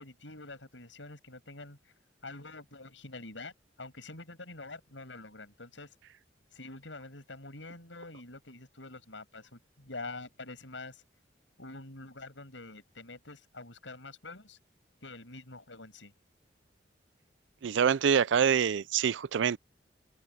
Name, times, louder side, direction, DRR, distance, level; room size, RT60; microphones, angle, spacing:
voice 1, 0.0-1.9 2.2-3.5 3.8-6.0 6.5-11.0 11.6-14.6 15.0-16.1, left 2 dB, 90° left, 6.9 m, -46 dB
voice 2, 17.6-19.6, right 7 dB, 80° right, 0.4 m, -25 dB
head